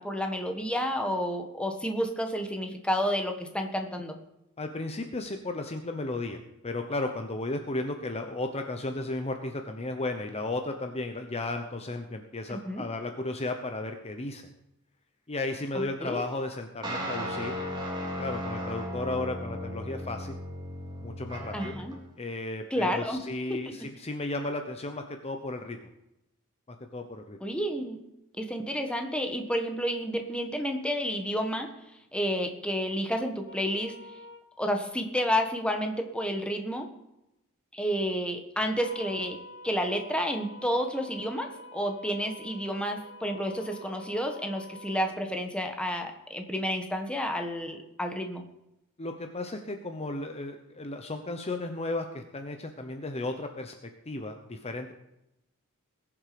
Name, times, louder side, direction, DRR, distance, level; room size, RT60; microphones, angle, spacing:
voice 1, 0.0-4.2 12.5-12.8 15.7-16.2 21.5-22.0 22.7-23.2 23.5-23.9 27.4-28.0 28.4-31.7 32.1-33.9 34.6-36.9 37.7-39.4 39.6-48.4, equal, 5° left, 4 dB, 1.4 m, -30 dB
voice 2, 4.6-14.4 15.3-17.6 18.2-20.4 21.0-21.8 22.2-25.8 26.7-27.4 49.0-53.7 54.1-54.9, left 2 dB, 30° left, 5 dB, 0.9 m, -34 dB
sound 1, 16.8-22.0, equal, 20° right, 3.5 m, -36 dB
sound 2, 33.5-34.4 38.8-45.1, left 1 dB, 55° left, 1.4 m, -47 dB
20.5 x 7.2 x 5.2 m, 0.89 s
head